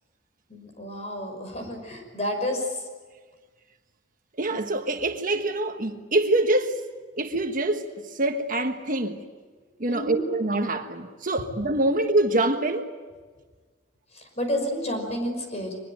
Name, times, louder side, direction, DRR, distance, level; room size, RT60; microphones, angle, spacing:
voice 1, 0.5-2.9 9.9-10.2 14.1-15.8, equal, 35° left, 5.8 m, -30 dB
voice 2, 4.4-6.8 7.2-7.9 8.1-9.2 9.8-12.9, right 2 dB, 45° right, 1.4 m, -25 dB
24.0 x 21.0 x 9.0 m
head